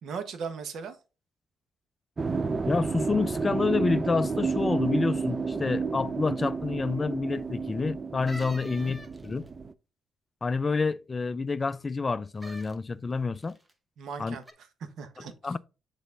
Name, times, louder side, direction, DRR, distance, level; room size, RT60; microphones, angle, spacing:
voice 1, 0.0-1.0 8.7-8.9 14.0-14.4 14.8-15.5, right 6 dB, 70° right, 1.1 m, -38 dB
sound 1, 2.2-9.7, right 4 dB, 30° right, 0.4 m, -31 dB
voice 2, 2.7-9.4 10.4-13.6 14.2-14.4 15.4-15.6, left 4 dB, 30° left, 0.4 m, -28 dB
sound 2, 8.3-9.5 12.4-12.8 13.4-13.7 14.4-14.5, equal, 15° right, 1.0 m, -45 dB
7.1 x 4.1 x 3.7 m
cardioid pair, 90°, 0 cm